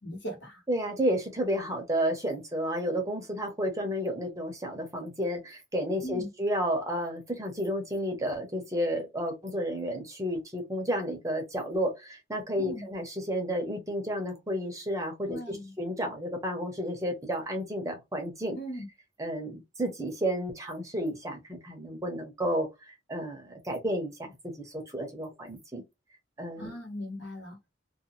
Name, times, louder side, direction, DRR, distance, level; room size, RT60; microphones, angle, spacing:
voice 1, 0.0-0.6 6.0-6.3 12.6-12.9 15.3-15.7 18.5-18.9 26.6-27.6, equal, 65° left, 1.3 m, -38 dB
voice 2, 0.7-18.6 19.2-25.8 26.4-26.7, equal, 15° right, 0.7 m, -31 dB
2.6 x 2.2 x 2.9 m
head